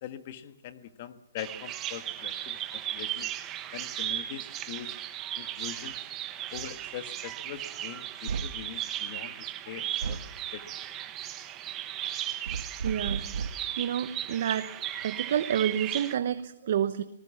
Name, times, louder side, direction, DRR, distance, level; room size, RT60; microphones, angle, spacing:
voice 1, 0.0-3.3 3.7-4.9 5.3-6.0 6.5-10.2 10.5-10.6, left 10 dB, 35° left, 11 dB, 1.5 m, -42 dB
Bird vocalization bird call bird song, 1.4-16.2, right 12 dB, 15° right, 1.1 m, -36 dB
sound 1, 6.5-6.8 8.3-8.7 10.0-10.3 12.5-13.7, right 5 dB, 90° right, 1.3 m, -34 dB
voice 2, 12.8-13.3 13.8-14.7 15.0-17.0, right 9 dB, 45° right, 12 dB, 1.0 m, -29 dB
26.0 x 19.0 x 7.2 m, 0.77 s
hypercardioid pair, 170°, 0 cm